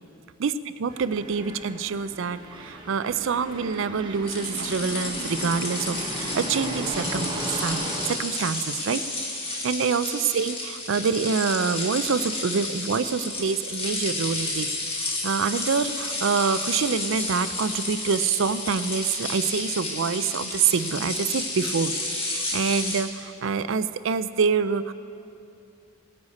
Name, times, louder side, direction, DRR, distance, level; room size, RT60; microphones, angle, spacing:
voice 1, 0.8-9.0 9.4-24.9, right 5 dB, 60° right, 13 dB, 0.4 m, -26 dB
sound 1, 0.9-8.1, right 1 dB, 20° right, 1.1 m, -35 dB
sound 2, 4.3-23.0, left 2 dB, 25° left, 1.7 m, -31 dB
19.0 x 9.7 x 4.2 m, 2.7 s
head